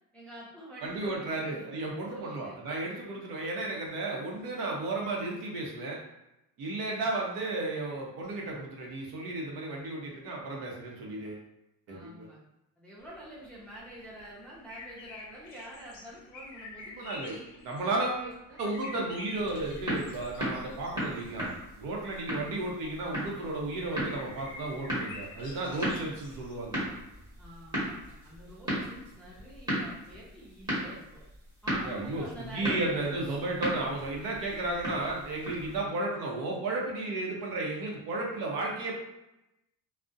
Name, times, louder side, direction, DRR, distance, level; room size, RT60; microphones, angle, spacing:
voice 1, 0.1-1.7 2.1-2.6 6.9-7.0 11.9-12.5 12.8-19.2 22.3-22.9 27.4-31.2 31.6-33.2, right 1 dB, 5° left, -7 dB, 0.5 m, -47 dB
voice 2, 0.8-6.0 6.6-11.4 11.9-12.3 16.9-17.4 17.6-18.2 18.6-21.5 21.8-26.8 31.8-38.9, right 2 dB, 65° right, -2 dB, 0.7 m, -33 dB
sound 1, 13.0-26.5, left 3 dB, 55° left, 0.6 m, -49 dB
sound 2, 19.3-35.8, equal, 10° right, 0.9 m, -37 dB
2.4 x 2.1 x 2.5 m, 0.90 s
cardioid pair, 140°, 36 cm